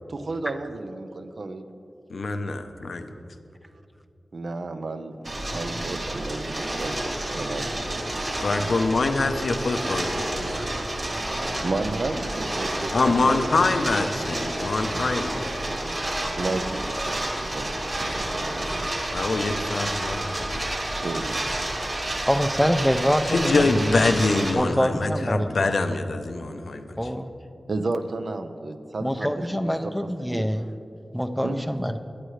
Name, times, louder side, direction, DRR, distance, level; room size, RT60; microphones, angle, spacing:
voice 1, 0.1-1.7 4.3-7.7 10.6-10.7 11.6-13.5 14.9-15.1 16.4-18.9 21.0-21.5 24.0-24.1 27.7-29.7 30.2-30.5 31.4-31.6, right 3 dB, 65° right, 8 dB, 0.6 m, -32 dB
voice 2, 2.1-2.6 2.9-3.0 8.4-10.6 12.9-15.5 19.1-20.6 23.3-27.0, left 3 dB, 80° left, 7 dB, 0.7 m, -24 dB
sound 1, 5.2-24.5, right 1 dB, 45° right, 2.6 m, -30 dB
voice 3, 22.3-23.9 24.5-25.7 27.0-27.3 29.0-30.7 31.1-32.0, equal, 5° left, 8 dB, 0.5 m, -25 dB
16.5 x 11.0 x 3.3 m, 2.6 s
wide cardioid pair, 95°, 0 cm